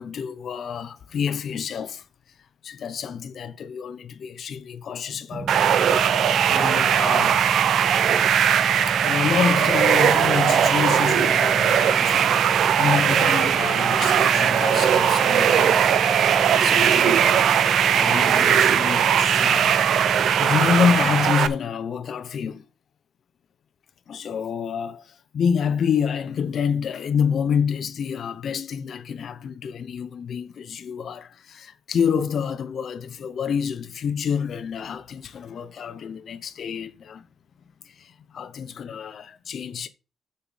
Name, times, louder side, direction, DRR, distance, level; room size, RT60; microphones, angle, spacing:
voice 1, 0.0-2.0 2.6-5.5 6.5-7.4 8.9-15.9 16.5-17.3 17.9-19.8 20.4-22.6 24.1-37.3 37.8-39.9, left 7 dB, 55° left, 0.8 m, -27 dB
sound 1, 5.3-21.3, right 2 dB, 20° right, 0.7 m, -34 dB
sound 2, 5.5-21.5, right 8 dB, 70° right, 0.7 m, -19 dB
7.0 x 5.6 x 6.2 m
cardioid pair, 125°, 0 cm